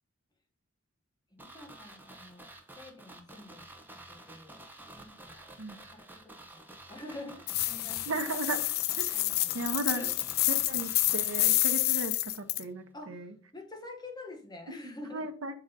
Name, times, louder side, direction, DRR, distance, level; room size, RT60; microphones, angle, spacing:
voice 1, 1.3-2.4 2.7-4.6 4.9-5.5 5.8-8.2 9.1-10.2 12.9-15.3, left 2 dB, 20° left, 1 dB, 1.4 m, -47 dB
sound 1, 1.4-12.3 12.6-12.7, right 1 dB, 10° right, 0.9 m, -51 dB
sound 2, 7.5-12.6, left 16 dB, 50° left, 0.3 m, -29 dB
voice 2, 8.1-8.7 9.0-9.1 9.5-10.1 10.5-13.3 15.1-15.6, right 2 dB, 70° right, 8 dB, 0.9 m, -35 dB
6.3 x 3.9 x 5.4 m, 0.43 s
head